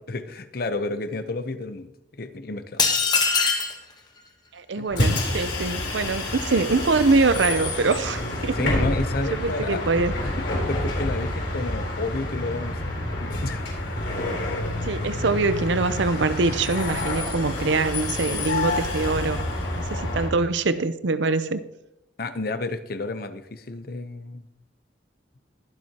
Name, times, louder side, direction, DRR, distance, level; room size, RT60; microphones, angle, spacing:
voice 1, 0.1-2.9 4.8-4.9 8.6-9.8 10.2-13.6 22.2-24.4, left 2 dB, 55° left, 10 dB, 0.8 m, -31 dB
sound 1, 2.8-3.8, left 5 dB, 20° left, 1.1 m, -21 dB
voice 2, 4.5-8.7 9.3-10.1 14.8-19.4 19.7-21.6, right 3 dB, 75° right, 13 dB, 0.6 m, -24 dB
Bus, 4.9-20.3, left 1 dB, 75° left, 3.6 m, -28 dB
21.5 x 7.6 x 2.9 m, 0.87 s
head